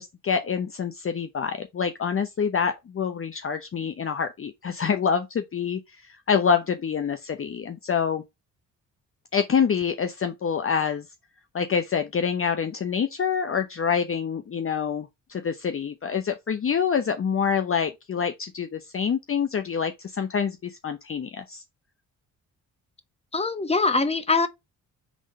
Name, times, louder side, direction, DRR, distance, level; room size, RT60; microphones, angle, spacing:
voice 1, 0.0-8.2 9.3-11.1 11.5-21.6, left 6 dB, 35° left, 0.8 m, -26 dB
voice 2, 23.3-24.5, left 3 dB, 15° left, 1.1 m, -23 dB
5.0 x 3.6 x 5.4 m
hypercardioid pair, 55°, 37 cm